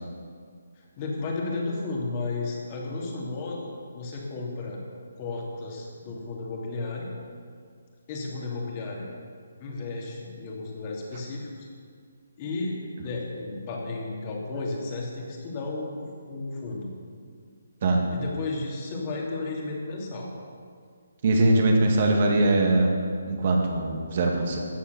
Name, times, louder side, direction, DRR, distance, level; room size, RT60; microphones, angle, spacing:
voice 1, 0.8-4.8 5.2-7.1 8.1-9.1 9.6-11.7 12.4-16.9 18.1-20.3, left 3 dB, 30° left, -2 dB, 2.8 m, -33 dB
voice 2, 21.2-23.0 23.3-24.6, right 2 dB, 45° right, 1 dB, 2.1 m, -21 dB
14.5 x 8.3 x 7.1 m, 2.1 s
hypercardioid pair, 155°, 0 cm